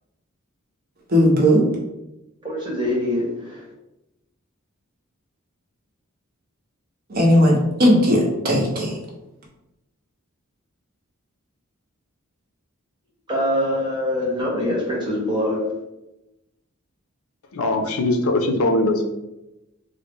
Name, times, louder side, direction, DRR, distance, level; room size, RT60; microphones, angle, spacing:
voice 1, 1.1-1.7 7.1-9.0, equal, 45° right, -2 dB, 0.8 m, -17 dB
voice 2, 2.4-3.6 13.3-15.7, left 1 dB, 20° right, -4 dB, 1.0 m, -24 dB
voice 3, 17.5-19.0, left 2 dB, 80° left, 5 dB, 0.5 m, -21 dB
3.8 x 2.0 x 3.5 m, 0.92 s
head